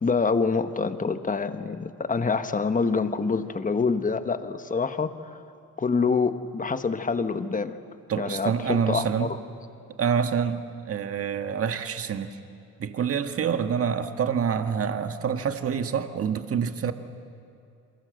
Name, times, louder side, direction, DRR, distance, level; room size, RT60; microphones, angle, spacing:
voice 1, 0.0-5.1 5.8-7.8 8.2-9.4, left 4 dB, 25° left, 10 dB, 1.4 m, -26 dB
voice 2, 8.1-9.3 10.0-12.3 12.8-16.9, right 7 dB, 50° right, 8 dB, 1.6 m, -27 dB
28.5 x 23.5 x 7.9 m, 2.5 s
cardioid pair, 90°, 30 cm